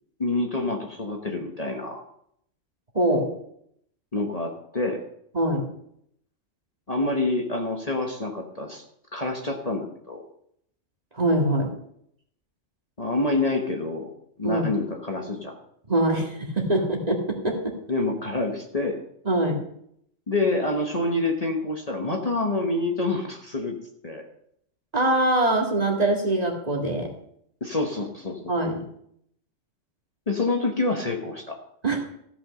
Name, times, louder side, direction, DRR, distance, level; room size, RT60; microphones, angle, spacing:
voice 1, 0.2-2.0 4.1-5.0 6.9-8.8 9.1-10.2 13.0-14.1 14.4-15.5 17.9-19.0 20.3-23.8 24.0-24.2 27.6-28.4 30.3-31.6, left 2 dB, 30° left, 1 dB, 1.3 m, -27 dB
voice 2, 2.9-3.3 5.3-5.6 11.1-11.7 14.4-14.7 15.9-17.8 19.3-19.6 24.9-27.1 28.5-28.8 31.8-32.0, right 1 dB, 30° right, 1 dB, 2.0 m, -23 dB
15.0 x 5.6 x 6.3 m, 0.72 s
omnidirectional pair, 1.3 m